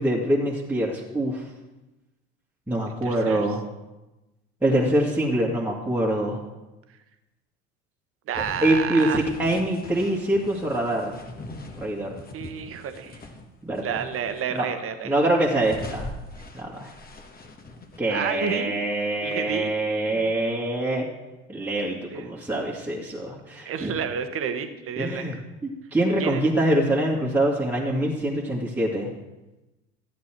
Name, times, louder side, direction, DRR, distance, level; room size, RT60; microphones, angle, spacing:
voice 1, 0.0-1.4 2.7-3.6 4.6-6.4 8.6-11.2 11.8-12.2 13.6-14.1 14.5-14.7 15.0-16.1 16.5-16.9 18.0-21.1 21.5-23.9 25.0-25.4 25.6-29.1, right 1 dB, 5° right, -4 dB, 2.0 m, -24 dB
voice 2, 3.0-3.5 8.3-9.2 12.3-13.2 13.8-15.1 18.1-18.7 19.2-19.7 20.1-20.3 22.1-22.3 23.7-25.3 26.2-26.4, right 7 dB, 40° right, 9 dB, 1.2 m, -30 dB
sound 1, 8.3-13.4 13.7-14.6 15.1-18.0, left 2 dB, 25° left, 1.6 m, -42 dB
13.0 x 8.6 x 4.5 m, 1.1 s
hypercardioid pair, 75°, 34 cm